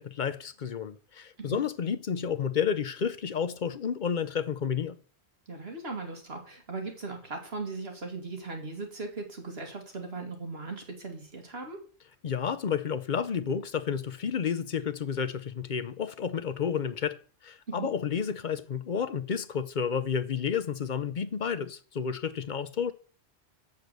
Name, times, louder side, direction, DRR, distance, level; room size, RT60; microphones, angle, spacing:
voice 1, 0.0-5.0 12.2-17.2 17.4-22.9, left 7 dB, 50° left, 0.7 m, -31 dB
voice 2, 5.5-11.8 17.7-17.9, right 3 dB, 60° right, 2.1 m, -38 dB
7.8 x 6.6 x 6.7 m
omnidirectional pair, 1.2 m